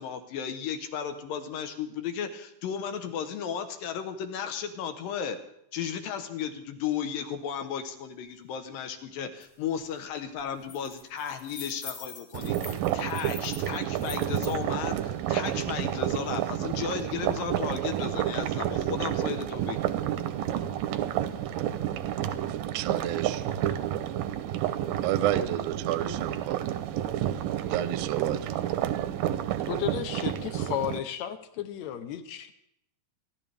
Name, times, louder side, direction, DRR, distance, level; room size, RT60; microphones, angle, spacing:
voice 1, 0.0-5.4 5.7-20.0, left 8 dB, 85° left, 8 dB, 2.9 m, -34 dB
sound 1, 9.4-9.5 9.8-10.1 10.4-14.5, left 5 dB, 40° left, 1.6 m, -44 dB
sound 2, 12.3-31.0, right 11 dB, 90° right, 2.5 m, -30 dB
voice 2, 22.2-23.5 25.0-26.7 27.2-28.5, right 11 dB, 70° right, 11 dB, 1.6 m, -31 dB
voice 3, 29.6-32.5, left 10 dB, 70° left, 10 dB, 1.9 m, -33 dB
29.0 x 11.5 x 3.5 m, 0.76 s
omnidirectional pair, 3.9 m